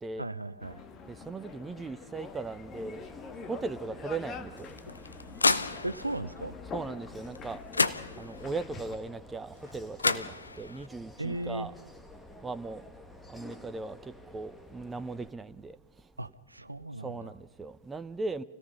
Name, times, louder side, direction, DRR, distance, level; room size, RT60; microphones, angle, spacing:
voice 1, 0.2-0.8 5.8-6.6 11.2-11.7 16.2-17.3, right 1 dB, 85° right, 0.7 m, -36 dB
sound 1, 0.6-9.0, left 4 dB, 30° left, 1.9 m, -45 dB
voice 2, 1.1-3.0 3.4-4.5 6.7-7.6 8.2-11.7 12.4-12.8 13.3-14.0 14.3-15.8 17.0-18.4, right 3 dB, 15° right, 0.8 m, -38 dB
sound 2, 2.1-15.3, left 1 dB, 5° left, 1.7 m, -51 dB
sound 3, 4.6-6.2 7.4-7.5 7.7-8.6 9.7-9.8 10.0-10.9, left 3 dB, 80° left, 0.8 m, -30 dB
27.0 x 17.5 x 5.5 m
figure-of-eight pair, 90°, 0 cm